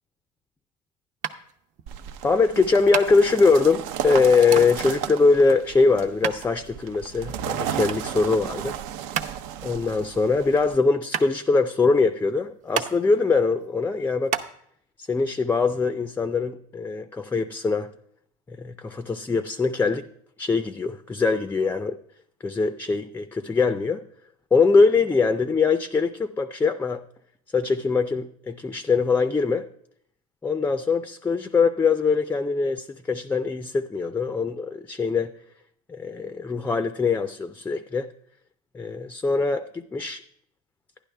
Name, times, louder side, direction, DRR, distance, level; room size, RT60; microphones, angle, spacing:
sound 1, 1.2-14.5, right 8 dB, 45° right, 0.8 m, -34 dB
sound 2, 1.9-10.8, right 9 dB, 75° right, 0.7 m, -34 dB
voice 1, 2.2-8.8 9.6-14.4 15.0-17.9 18.5-20.1 20.4-22.0 22.4-24.0 24.5-27.0 27.5-29.7 30.4-35.3 35.9-38.1 38.7-40.2, left 4 dB, 10° left, 0.4 m, -22 dB
11.0 x 10.5 x 3.4 m
supercardioid pair, 115°, 18 cm